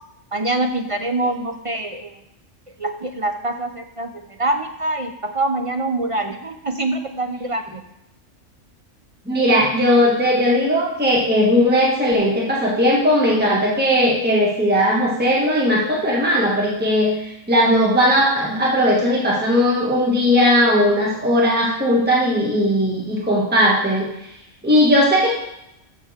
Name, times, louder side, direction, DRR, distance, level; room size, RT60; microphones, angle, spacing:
voice 1, 0.3-2.2 2.8-7.8, right 2 dB, 40° right, 5 dB, 0.5 m, -25 dB
voice 2, 9.2-24.1 24.6-25.3, equal, 10° right, -4 dB, 1.4 m, -18 dB
13.5 x 6.6 x 3.6 m, 0.85 s
omnidirectional pair, 1.3 m